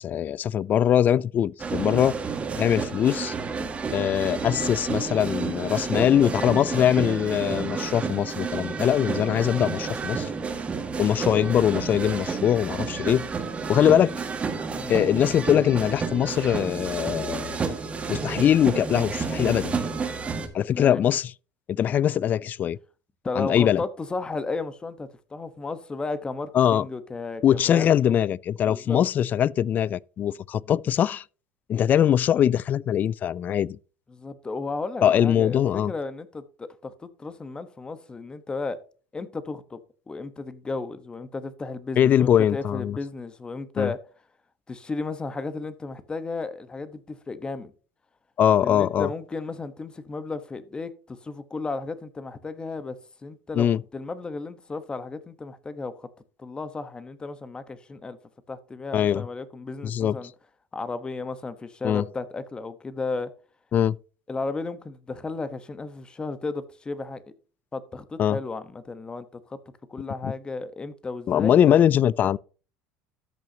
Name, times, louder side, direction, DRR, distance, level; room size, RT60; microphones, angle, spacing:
voice 1, 0.0-2.2 2.6-3.3 3.9-10.3 11.0-13.3 13.7-14.1 14.9-17.6 18.1-19.8 20.5-21.3 21.7-22.8 23.4-23.8 26.5-26.9 27.4-31.2 31.7-33.8 35.0-35.9 42.0-43.0 43.8-43.9 48.4-49.1 53.6-53.8 58.9-59.3 59.8-60.2 61.8-62.0 63.7-64.0 68.2-68.4 70.2-70.3 71.3-72.4, left 10 dB, 40° left, 0.3 m, -22 dB
sound 1, 1.6-20.5, right 5 dB, 25° right, 1.8 m, -30 dB
voice 2, 5.7-6.9 14.7-15.0 20.7-21.0 23.2-28.2 28.6-29.0 34.1-38.8 39.1-39.8 40.1-44.0 44.7-47.7 48.6-53.0 53.2-53.7 53.9-56.1 56.4-58.2 58.5-60.3 60.7-63.3 64.3-67.3 67.7-69.6 69.9-71.8, left 3 dB, 20° left, 1.1 m, -34 dB
13.5 x 6.3 x 2.9 m
supercardioid pair, 105°, 5 cm